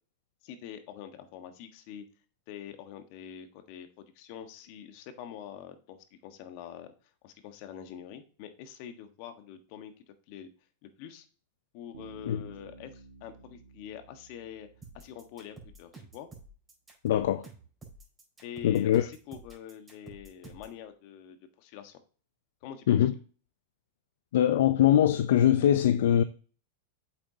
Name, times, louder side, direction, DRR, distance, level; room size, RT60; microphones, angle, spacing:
voice 1, 0.4-2.0 2.5-6.9 7.2-9.9 10.3-10.5 10.8-11.3 11.7-14.7 14.9-16.3 18.4-22.0 22.6-22.8, left 9 dB, 55° left, 1.4 m, -45 dB
Bass guitar, 11.9-15.7, right 3 dB, 85° right, 1.7 m, -52 dB
sound 1, 14.8-20.8, right 3 dB, 15° right, 4.5 m, -50 dB
voice 2, 17.0-17.5 18.6-19.1 22.9-23.1 24.3-26.2, left 11 dB, 70° left, 0.5 m, -22 dB
8.5 x 7.3 x 2.8 m
hypercardioid pair, 105°, 0 cm